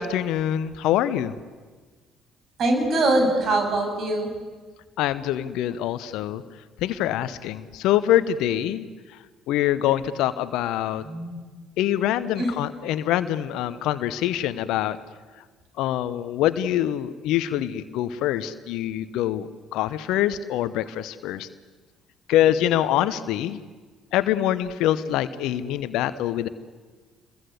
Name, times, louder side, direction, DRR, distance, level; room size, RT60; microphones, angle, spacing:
voice 1, 0.0-1.3 5.0-6.4 6.8-11.0 11.8-15.0 15.4-15.5 15.8-21.5 22.3-23.6 24.1-26.5, left 12 dB, 65° left, 14 dB, 1.0 m, -25 dB
voice 2, 2.6-4.3 11.0-11.4 12.4-12.5, right 2 dB, 50° right, 4 dB, 7.2 m, -23 dB
28.5 x 22.0 x 8.1 m, 1.4 s
figure-of-eight pair, 50°, 0 cm